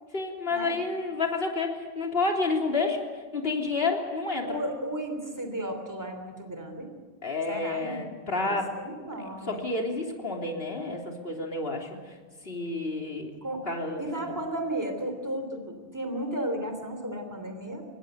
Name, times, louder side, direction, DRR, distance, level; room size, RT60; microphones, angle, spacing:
voice 1, 0.1-3.1 3.3-4.6 7.2-8.7 9.5-12.2 12.4-13.3 13.7-14.4, left 3 dB, 55° left, 1 dB, 3.6 m, -30 dB
voice 2, 4.4-6.9 7.5-8.0 8.4-9.6 13.4-13.6 14.0-17.9, right 1 dB, 15° right, 6 dB, 3.3 m, -34 dB
25.5 x 20.0 x 8.1 m, 1.5 s
omnidirectional pair, 1.2 m